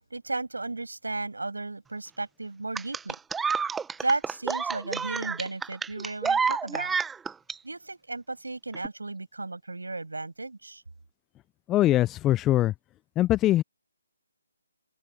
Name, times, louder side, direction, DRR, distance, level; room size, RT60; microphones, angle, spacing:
voice 1, 0.1-3.2 4.0-6.9 7.6-10.8, right 2 dB, 80° right, 7.0 m, -34 dB
sound 1, 2.7-7.5 8.7-8.9, right 5 dB, 5° right, 1.3 m, -29 dB
voice 2, 11.7-12.7 13.2-13.6, left 14 dB, 15° left, 0.7 m, -22 dB
figure-of-eight pair, 150°, 0 cm